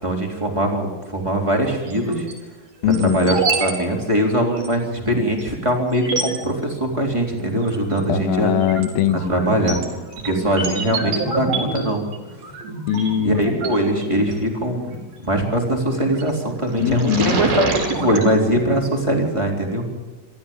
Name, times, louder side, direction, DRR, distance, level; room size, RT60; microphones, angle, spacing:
voice 1, 0.0-2.3 2.8-8.5 9.1-9.8 10.2-12.1 13.2-19.9, right 1 dB, 10° right, 0 dB, 3.4 m, -21 dB
sound 1, 1.9-2.3 2.9-3.7 4.0-4.1 4.6-4.7 5.4-5.5 5.9-6.4 7.6-8.0 8.4-14.3 15.9-16.3 16.7-18.3, right 3 dB, 90° right, 6.3 m, -27 dB
voice 2, 2.8-3.4 8.1-9.3 12.9-13.6 16.8-17.4, left 10 dB, 85° left, 10 dB, 2.9 m, -21 dB
27.0 x 14.0 x 7.2 m, 1.3 s
omnidirectional pair, 4.1 m